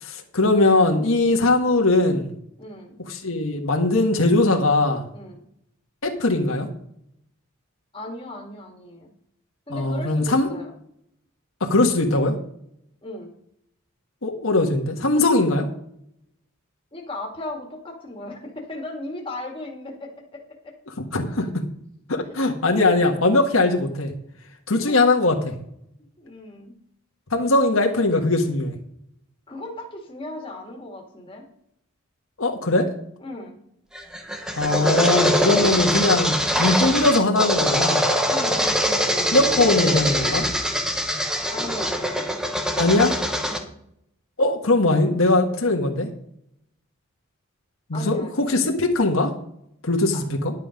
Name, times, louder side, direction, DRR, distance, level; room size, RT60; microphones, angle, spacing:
voice 1, 0.0-2.3 3.1-5.0 6.0-6.7 9.7-10.5 11.6-12.3 14.2-15.7 21.1-21.6 22.1-24.1 24.7-25.5 27.3-28.7 32.4-32.9 34.6-38.0 39.3-40.5 42.8-43.2 44.4-46.1 47.9-49.3 49.8-50.5, left 2 dB, 80° left, 2 dB, 1.5 m, -20 dB
voice 2, 2.6-3.0 5.1-5.4 7.9-9.1 9.7-10.7 13.0-13.3 16.9-20.8 24.7-25.0 26.2-26.8 29.5-31.5 33.2-33.6 38.3-39.1 41.5-42.2 43.4-43.7 47.9-48.6 50.1-50.2, left 1 dB, 25° left, 1 dB, 2.0 m, -37 dB
sound 1, 34.0-43.6, equal, 5° right, 1.0 m, -23 dB
11.0 x 7.8 x 5.2 m, 0.74 s
head